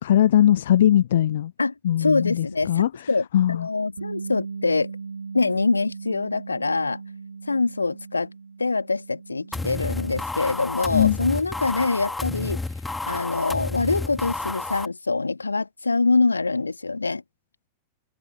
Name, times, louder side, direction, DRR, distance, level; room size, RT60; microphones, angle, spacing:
voice 1, 0.0-1.5 1.8-2.9 3.3-3.7 10.9-11.2, left 11 dB, 60° left, 0.4 m, -20 dB
voice 2, 2.0-4.9 5.3-7.0 7.5-8.3 8.6-12.6 13.1-17.2, left 3 dB, 80° left, 2.0 m, -24 dB
Bass guitar, 4.0-10.2, right 5 dB, 75° right, 7.6 m, -38 dB
sound 1, 9.5-14.9, left 3 dB, 10° left, 2.4 m, -31 dB
figure-of-eight pair, 90°, 0 cm